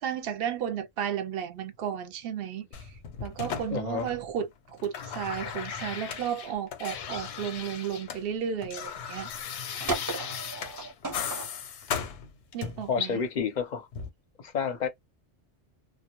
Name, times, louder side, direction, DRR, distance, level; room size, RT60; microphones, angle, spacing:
voice 1, 0.0-2.9 3.2-9.3 12.5-13.2, right 8 dB, 65° right, 0.7 m, -33 dB
sound 1, 2.7-4.4 4.7-8.2 8.5-12.9 13.9-14.1, left 7 dB, 85° left, 0.9 m, -37 dB
voice 2, 3.7-4.1 12.9-13.9 14.4-14.9, left 6 dB, 50° left, 0.6 m, -29 dB
sound 2, 5.5-5.7 6.2-7.5 7.9-8.0 8.4-8.5 8.7-9.4 9.7-11.5, right 2 dB, 20° right, 0.6 m, -36 dB
2.3 x 2.0 x 2.9 m
omnidirectional pair, 1.1 m